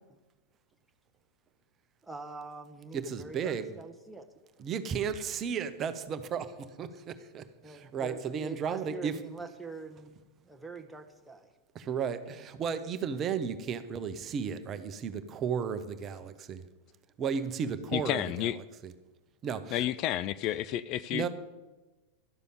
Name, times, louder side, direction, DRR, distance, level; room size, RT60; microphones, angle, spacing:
voice 1, 2.0-4.3 7.6-10.2 10.4-11.5, right 3 dB, 5° right, 3 dB, 1.2 m, -44 dB
voice 2, 2.9-3.8 4.6-6.5 6.8-6.9 7.3-7.4 7.9-9.2 11.7-16.6 17.2-18.9 19.4-19.9 21.1-21.3, right 7 dB, 30° right, 10 dB, 0.9 m, -34 dB
voice 3, 17.9-18.6 19.7-21.3, left 13 dB, 40° left, 15 dB, 0.3 m, -31 dB
12.0 x 6.8 x 9.3 m, 1.1 s
figure-of-eight pair, 90°, 0 cm